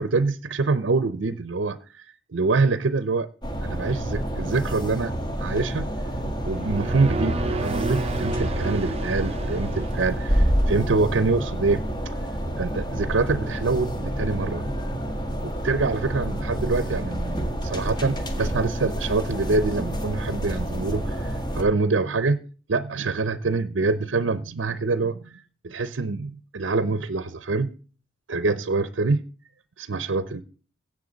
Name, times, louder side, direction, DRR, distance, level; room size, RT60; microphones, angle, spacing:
voice 1, 0.0-3.3 3.6-5.9 6.4-11.8 12.6-14.7 15.4-22.4 22.7-27.7 28.3-29.2 29.8-30.4, right 3 dB, 75° right, 13 dB, 0.7 m, -25 dB
sound 1, 3.4-21.6, equal, 25° left, 1.8 m, -28 dB
sound 2, 6.4-10.7, right 2 dB, 30° right, 0.7 m, -31 dB
16.5 x 6.8 x 3.9 m, 0.38 s
head